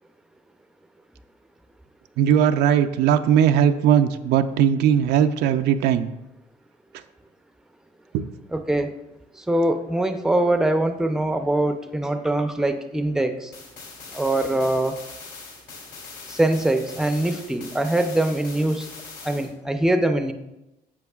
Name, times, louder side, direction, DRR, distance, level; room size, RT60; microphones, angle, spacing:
voice 1, 2.2-6.1 8.1-8.2, right 9 dB, 80° right, 9 dB, 0.5 m, -19 dB
voice 2, 8.5-8.9 9.5-13.5 14.1-15.0 16.3-18.9 19.2-20.3, right 1 dB, 5° right, 7 dB, 0.6 m, -23 dB
sound 1, 13.5-19.5, left 4 dB, 65° left, 3.0 m, -41 dB
11.0 x 7.0 x 2.4 m, 0.95 s
cardioid pair, 110°, 17 cm